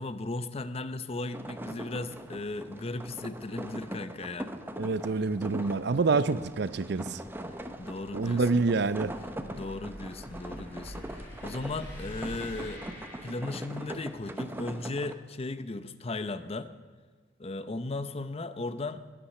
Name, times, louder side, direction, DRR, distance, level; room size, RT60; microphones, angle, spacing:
voice 1, 0.0-4.5 7.8-8.4 9.5-12.8 13.2-16.7 17.4-19.1, left 2 dB, 30° left, 12 dB, 0.6 m, -36 dB
sound 1, 1.3-15.1, right 1 dB, 10° right, 0.8 m, -41 dB
sound 2, 4.1-14.1, equal, 10° left, 5.7 m, -48 dB
voice 2, 4.8-7.2 8.1-9.1, right 3 dB, 60° right, 15 dB, 0.5 m, -27 dB
21.0 x 8.8 x 6.6 m, 1.4 s
head